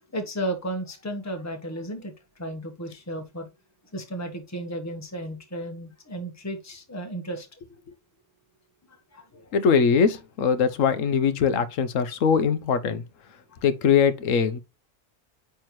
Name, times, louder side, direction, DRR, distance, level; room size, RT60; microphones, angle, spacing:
voice 1, 0.1-3.5 3.9-7.5 9.1-9.5 13.5-13.6, right 1 dB, 15° left, 1.2 m, -34 dB
voice 2, 9.5-13.0 13.6-14.6, left 6 dB, 80° left, 1.2 m, -22 dB
8.8 x 3.5 x 3.1 m
omnidirectional pair, 1.3 m